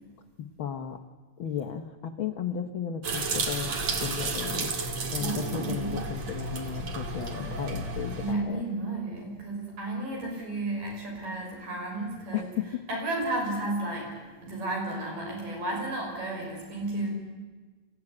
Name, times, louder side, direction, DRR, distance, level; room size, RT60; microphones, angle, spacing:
voice 1, 0.4-1.0 1.4-8.6 12.3-12.8, left 9 dB, 90° left, 7 dB, 1.1 m, -35 dB
sound 1, 3.0-8.3, right 3 dB, 55° right, 3.1 m, -32 dB
voice 2, 5.2-6.0 8.2-12.5 12.9-14.1 14.4-17.1, right 2 dB, 90° right, -1 dB, 7.9 m, -32 dB
26.5 x 15.5 x 9.7 m, 1.4 s
omnidirectional pair, 3.7 m